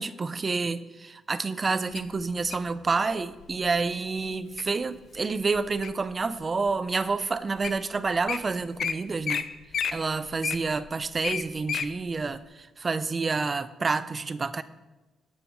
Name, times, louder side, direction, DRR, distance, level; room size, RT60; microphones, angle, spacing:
voice 1, 0.0-9.5 9.9-14.6, right 4 dB, 30° right, 13 dB, 0.7 m, -29 dB
Wild animals, 2.0-2.7 3.4-3.7 4.2-4.6 5.2-6.1 6.7-6.8 7.4-7.5 7.6-7.8 8.1-8.4 8.8-8.9 9.2-9.4 9.7-11.9 12.3-12.4, left 7 dB, 60° left, 0.8 m, -31 dB
19.5 x 9.2 x 3.2 m, 1.1 s
cardioid pair, 90°, 0 cm